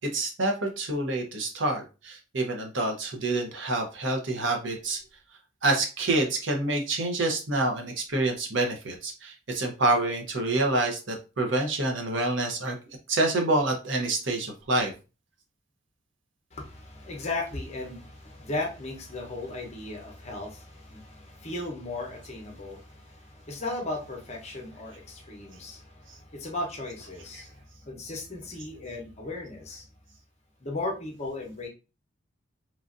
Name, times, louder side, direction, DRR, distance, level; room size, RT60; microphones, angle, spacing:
voice 1, 0.1-5.0 5.6-12.8 13.1-14.9, right 2 dB, 70° right, 0.7 m, -27 dB
voice 2, 16.5-29.9 30.6-31.7, left 2 dB, 35° left, 0.7 m, -36 dB
3.1 x 2.5 x 2.4 m
head